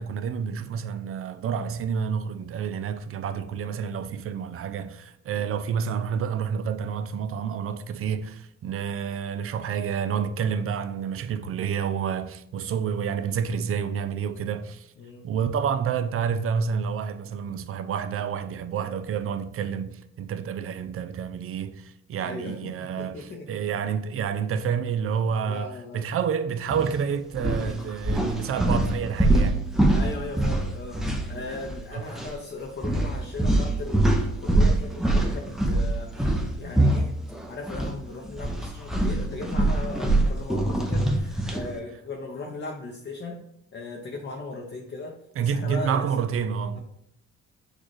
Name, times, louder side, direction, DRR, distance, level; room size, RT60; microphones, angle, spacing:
voice 1, 0.0-14.9 15.2-29.7 31.9-32.1 45.4-46.8, right 7 dB, 50° right, 0.4 m, -29 dB
voice 2, 15.0-15.3 22.2-23.7 25.5-26.1 29.9-37.2 37.5-43.4 43.7-46.1, left 3 dB, 40° left, 0.7 m, -38 dB
sound 1, 26.7-26.9 27.3-31.8 32.1-32.3 32.8-37.9 38.2-41.7, right 1 dB, ahead, 0.7 m, -24 dB
6.4 x 2.4 x 3.2 m
cardioid pair, 90°, 30 cm